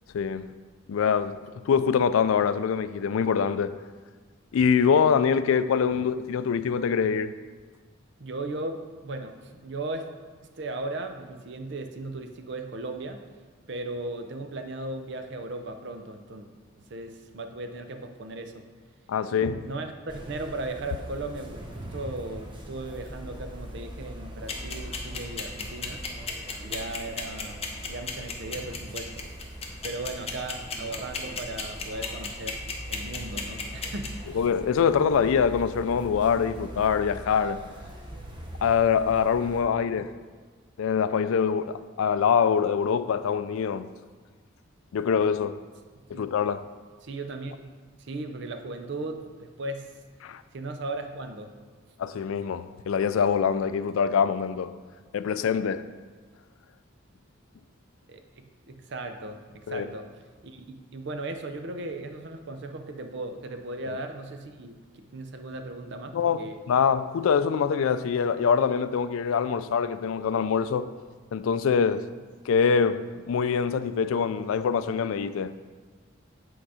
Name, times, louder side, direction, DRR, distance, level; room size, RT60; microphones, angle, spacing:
voice 1, 0.1-0.5 0.9-1.4 1.6-3.7 4.5-7.3 19.1-19.7 34.3-37.6 38.6-40.1 40.8-43.9 44.9-45.6 46.1-46.6 50.2-50.4 52.0-54.7 55.1-55.8 59.7-59.9 66.1-66.4 66.7-70.9 71.3-72.1 72.5-75.5, left 6 dB, 80° left, 0.3 m, -24 dB
voice 2, 8.2-10.1 10.6-13.2 13.7-16.5 16.8-18.6 19.6-19.9 20.3-26.0 26.6-29.3 29.8-32.6 32.9-34.4 46.1-46.2 47.0-47.6 48.0-49.9 50.5-51.5 58.1-60.1 60.4-66.6, right 2 dB, 55° right, 0.6 m, -37 dB
sound 1, 20.1-39.6, equal, 20° right, 0.7 m, -42 dB
sound 2, 24.5-34.1, left 6 dB, 30° left, 0.8 m, -32 dB
8.7 x 3.9 x 4.8 m
head